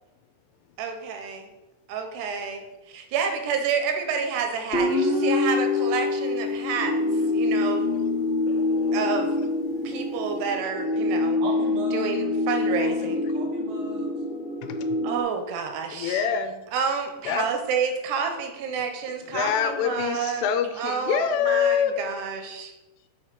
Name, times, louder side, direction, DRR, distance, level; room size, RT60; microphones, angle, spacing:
voice 1, 0.8-1.5 1.9-7.0 7.3-7.9 8.9-9.3 9.8-11.4 11.9-13.2 15.0-16.2 16.7-20.5 20.8-22.7, right 6 dB, 90° right, 5 dB, 3.1 m, -29 dB
Guitar, 4.7-8.0, left 3 dB, 20° left, 2.0 m, -26 dB
sound 1, 6.7-15.2, left 2 dB, 45° left, 1.7 m, -26 dB
voice 2, 8.5-9.1 14.6-15.0 15.9-16.6 17.2-17.5 19.2-22.1, left 8 dB, 85° left, 8 dB, 2.8 m, -26 dB
voice 3, 11.4-12.1 12.8-14.1, right 2 dB, 60° right, -2 dB, 3.2 m, -37 dB
7.2 x 5.0 x 5.7 m, 1.0 s
omnidirectional pair, 4.8 m